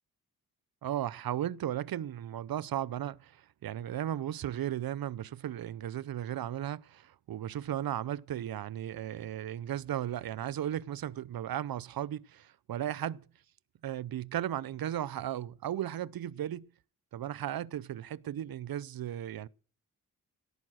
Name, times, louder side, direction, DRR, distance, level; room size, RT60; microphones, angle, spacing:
voice 1, 0.8-13.2 13.8-16.7 17.1-19.5, right 11 dB, 90° right, 0.6 m, -35 dB
17.0 x 8.9 x 6.3 m
wide cardioid pair, 140°, 34 cm